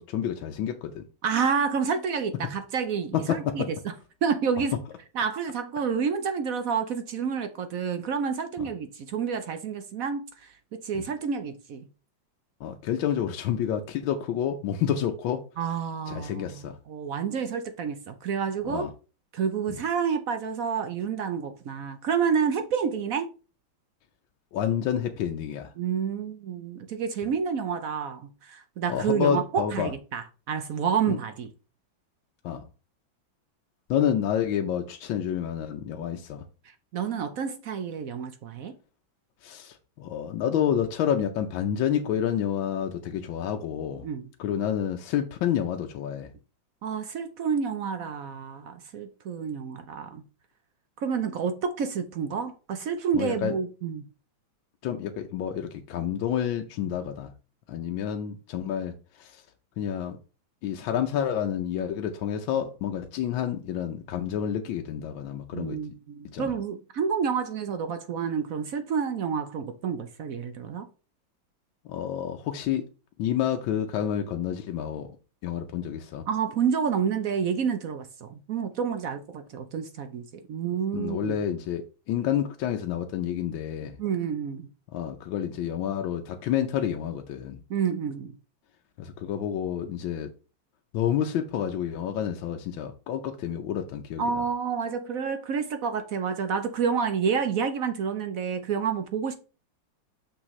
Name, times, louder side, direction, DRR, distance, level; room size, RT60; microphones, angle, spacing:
voice 1, 0.0-1.0 3.1-3.6 12.6-15.4 16.1-16.8 18.7-18.9 24.5-25.7 28.9-29.9 31.1-31.2 32.4-32.6 33.9-36.4 39.4-44.1 44.4-46.3 53.1-53.5 54.8-57.3 57.7-59.4 59.8-60.2 60.6-65.9 66.3-66.5 71.9-72.9 73.2-75.1 75.4-76.2 80.9-84.0 84.9-87.6 89.0-90.3 90.9-94.2, left 9 dB, 80° left, 1.5 m, -29 dB
voice 2, 1.2-3.6 4.2-4.7 5.1-10.5 10.8-11.9 15.6-18.9 19.3-23.3 25.8-31.5 36.6-38.7 44.0-44.3 46.8-50.2 51.0-54.0 65.5-70.9 76.3-81.4 84.0-84.7 87.7-88.3 94.2-99.3, right 6 dB, 65° right, 0.9 m, -29 dB
6.4 x 6.1 x 3.1 m
omnidirectional pair, 2.1 m